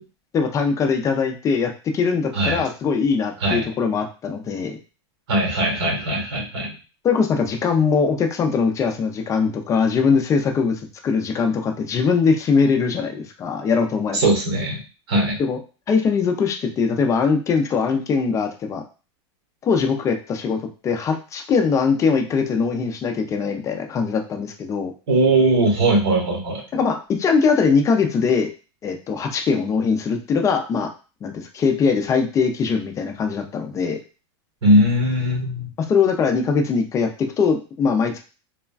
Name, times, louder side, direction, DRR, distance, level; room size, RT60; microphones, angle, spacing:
voice 1, 0.3-4.8 7.0-10.8 11.0-14.2 15.4-15.6 15.9-18.8 19.6-20.6 20.8-24.9 26.7-28.5 28.8-30.9 31.2-34.0 35.9-38.2, left 5 dB, 20° left, 4 dB, 0.4 m, -21 dB
voice 2, 5.3-6.7 14.1-14.8 15.1-15.4 25.1-26.6 34.6-35.7, right 1 dB, 70° right, 0 dB, 1.3 m, -19 dB
3.3 x 2.1 x 2.3 m, 0.34 s
supercardioid pair, 135°, 15 cm